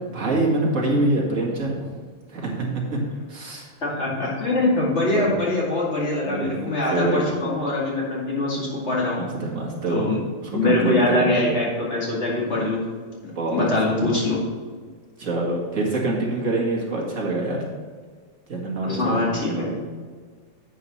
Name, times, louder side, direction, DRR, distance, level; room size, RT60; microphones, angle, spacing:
voice 1, 0.1-1.9 2.3-3.0 3.3-3.7 5.1-5.3 6.3-6.5 6.9-7.4 9.1-10.1 10.4-11.4 13.3-14.0 15.2-17.6 18.5-19.8, right 2 dB, 75° right, -2 dB, 2.1 m, -25 dB
voice 2, 3.8-9.2 9.9-10.2 10.5-12.8 13.5-14.4 18.8-19.7, left 2 dB, 55° left, -5 dB, 2.6 m, -23 dB
9.7 x 8.5 x 3.1 m, 1.6 s
omnidirectional pair, 1.4 m